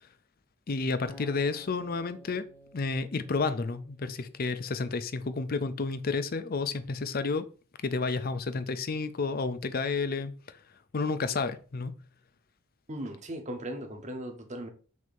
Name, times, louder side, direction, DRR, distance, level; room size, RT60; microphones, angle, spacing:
voice 1, 0.7-2.4 2.7-7.4 7.8-10.6 10.9-11.9, left 4 dB, 45° left, 12 dB, 0.5 m, -31 dB
Acoustic guitar, 1.1-4.3, left 2 dB, 5° left, 1.0 m, -53 dB
voice 2, 12.9-14.7, right 1 dB, 35° right, 5 dB, 1.0 m, -38 dB
6.3 x 2.8 x 5.2 m, 0.38 s
head